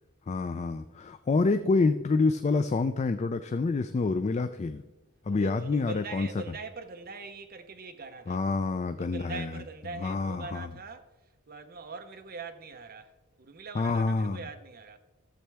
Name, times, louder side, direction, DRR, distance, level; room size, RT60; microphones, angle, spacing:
voice 1, 0.3-4.8 5.3-6.3 8.3-9.5 10.0-10.7 13.8-14.4, left 3 dB, 30° left, 0.3 m, -27 dB
voice 2, 5.3-8.4 9.0-11.1 11.5-13.1 13.4-15.0, right 4 dB, 45° right, 0.8 m, -42 dB
14.0 x 7.5 x 3.4 m
head